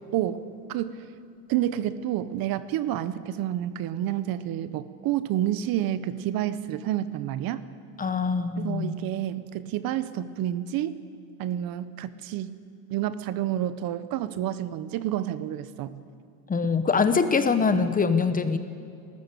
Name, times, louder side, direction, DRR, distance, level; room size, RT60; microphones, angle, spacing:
voice 1, 0.1-1.0 1.5-7.6 8.6-11.0 11.4-12.6 12.9-16.0, right 12 dB, 50° right, 14 dB, 0.9 m, -29 dB
voice 2, 8.0-8.9 16.5-18.6, left 5 dB, 20° left, 10 dB, 1.0 m, -23 dB
29.0 x 13.5 x 6.9 m, 2.5 s
supercardioid pair, 125°, 46 cm